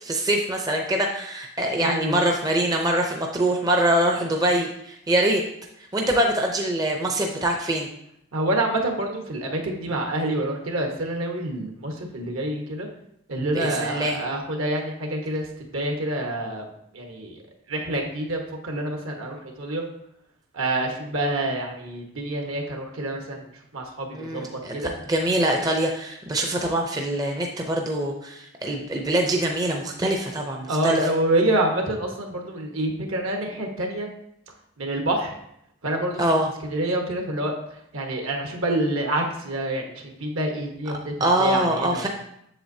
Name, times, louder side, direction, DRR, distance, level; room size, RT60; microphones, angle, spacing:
voice 1, 0.0-5.4 5.9-7.9 13.5-14.2 24.1-31.0 36.2-36.5 41.2-42.1, right 1 dB, 15° right, 2 dB, 0.5 m, -24 dB
voice 2, 1.8-2.2 8.3-12.9 13.3-15.4 15.7-16.7 16.9-17.4 17.7-19.8 20.5-24.9 30.7-34.1 34.8-35.4 35.8-36.2 36.6-42.1, right 1 dB, 70° right, 2 dB, 1.2 m, -27 dB
7.8 x 6.9 x 2.7 m, 0.75 s
head